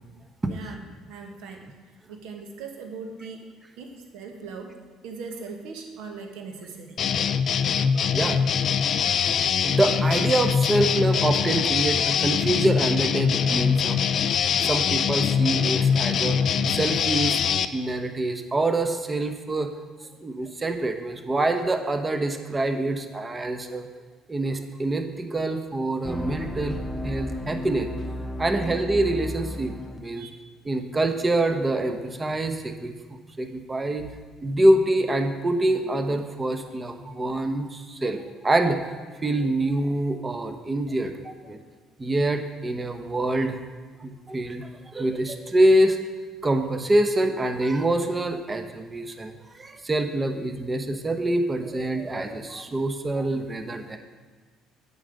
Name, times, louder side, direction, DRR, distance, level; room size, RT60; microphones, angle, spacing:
voice 1, 0.5-1.7 2.1-3.5 3.8-4.7 5.0-7.0 8.2-8.8 30.1-30.3, right 4 dB, 75° right, 3 dB, 1.3 m, -39 dB
sound 1, 7.0-17.7, left 7 dB, 55° left, 0.4 m, -23 dB
voice 2, 9.6-14.0 14.6-16.4 16.7-17.4 17.7-19.7 20.2-23.9 24.3-26.8 27.0-27.9 28.4-30.3 30.6-32.9 33.4-34.1 34.4-38.9 39.2-41.2 41.4-41.6 42.0-43.6 44.0-46.0 46.4-54.0, right 1 dB, 25° right, 7 dB, 1.0 m, -25 dB
sound 2, 26.0-30.0, left 1 dB, 15° left, 0.9 m, -33 dB
8.3 x 5.4 x 6.5 m, 1.4 s
hypercardioid pair, 60°, 0 cm